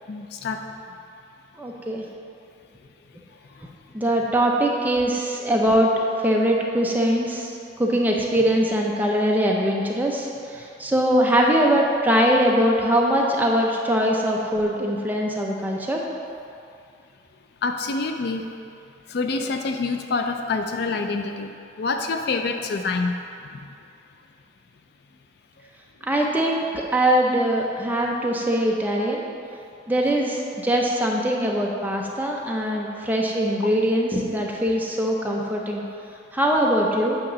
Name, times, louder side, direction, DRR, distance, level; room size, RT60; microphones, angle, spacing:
voice 1, 0.1-0.7 17.6-18.5 19.1-21.5 21.8-23.2 23.5-23.6, left 3 dB, 55° left, 5 dB, 0.4 m, -26 dB
voice 2, 1.6-2.0 3.9-16.0 26.0-29.2 29.9-35.8 36.3-37.2, equal, 10° right, -1 dB, 0.6 m, -22 dB
8.5 x 3.0 x 6.1 m, 2.5 s
head